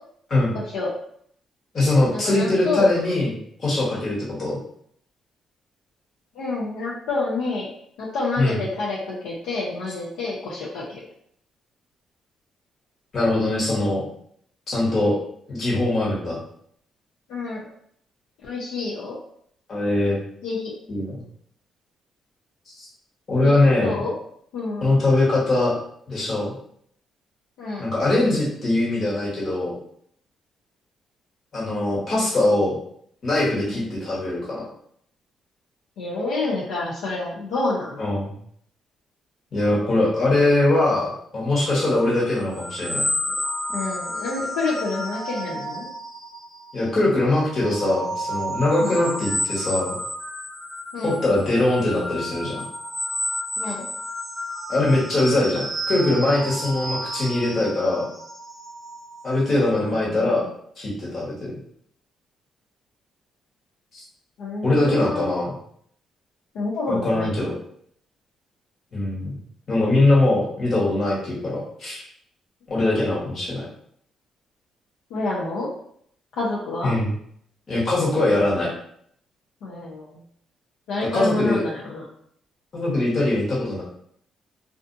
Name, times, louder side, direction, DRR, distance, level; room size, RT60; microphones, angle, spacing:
voice 1, 0.5-0.9 2.1-2.9 6.3-7.7 8.0-11.1 17.3-17.7 18.4-19.2 20.4-20.8 23.4-23.5 23.8-24.1 24.5-24.9 27.6-27.9 33.7-33.8 36.0-38.0 43.3-43.4 43.7-45.9 48.8-49.1 50.9-51.1 53.6-53.8 59.8-60.5 64.4-65.3 66.5-67.4 73.0-73.1 75.1-75.7 76.3-76.9 79.6-80.2 80.9-82.0, left 3 dB, 85° left, -5 dB, 0.6 m, -28 dB
voice 2, 1.7-4.6 8.4-8.6 13.1-14.0 14.7-15.2 15.5-16.4 19.7-20.2 20.9-21.2 22.8-22.9 23.3-24.0 24.8-25.7 26.1-26.6 27.8-29.8 31.5-32.7 33.2-34.7 38.0-38.3 39.5-43.0 46.7-50.0 51.0-52.6 54.7-58.0 59.2-60.4 60.8-61.5 63.9-64.0 64.6-65.5 66.9-67.5 68.9-69.3 69.7-72.0 72.7-73.6 76.8-77.1 77.7-78.7 81.1-81.6 82.7-83.8, left 2 dB, 50° left, -6 dB, 1.2 m, -22 dB
sound 1, 41.7-46.9 47.3-59.6, equal, 10° right, 0.7 m, -31 dB
2.4 x 2.4 x 2.5 m, 0.67 s
cardioid pair, 90°, 0 cm